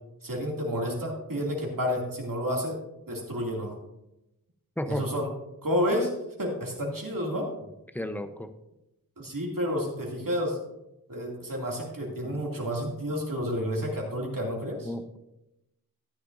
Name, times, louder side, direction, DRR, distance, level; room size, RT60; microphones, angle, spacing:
voice 1, 0.2-2.8 3.1-3.7 4.9-5.3 5.6-6.1 6.4-7.5 9.2-10.6 11.1-14.9, equal, 60° right, -1 dB, 2.5 m, -30 dB
voice 2, 4.8-5.1 7.9-8.5 12.2-12.4 14.8-15.2, left 1 dB, 5° left, 8 dB, 0.8 m, -33 dB
13.0 x 10.0 x 2.6 m, 0.90 s
wide cardioid pair, 55°, 37 cm